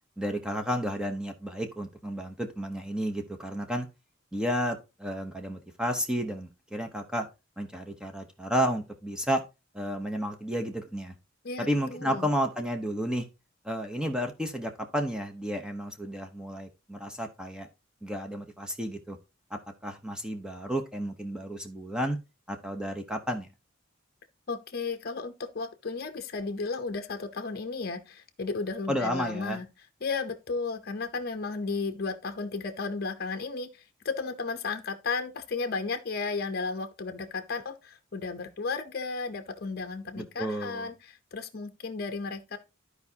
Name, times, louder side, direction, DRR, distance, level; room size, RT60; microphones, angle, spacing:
voice 1, 0.2-3.9 4.3-7.3 7.6-9.4 9.7-11.1 11.6-13.3 13.6-17.7 18.0-19.2 19.8-22.2 22.5-23.5 28.9-29.6 40.2-40.9, equal, 5° right, 0.8 m, -32 dB
voice 2, 11.4-12.3 24.5-29.7 30.0-42.6, left 4 dB, 50° left, 0.7 m, -34 dB
13.0 x 4.8 x 2.8 m
head